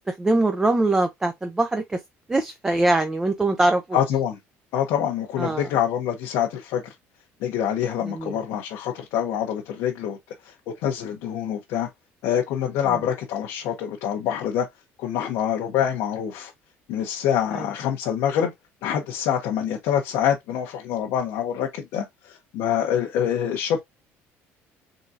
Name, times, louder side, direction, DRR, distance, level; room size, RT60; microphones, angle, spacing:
voice 1, 0.1-2.0 2.3-4.0 5.4-5.7 8.0-8.3 12.9-13.0 17.5-17.6, right 2 dB, 10° right, 0.5 m, -23 dB
voice 2, 3.9-4.4 4.7-6.9 7.4-10.2 10.4-11.9 12.2-14.7 15.0-16.5 16.9-18.5 18.8-23.8, left 9 dB, 70° left, 0.9 m, -25 dB
3.9 x 3.7 x 2.7 m
cardioid pair, 155°, 5 cm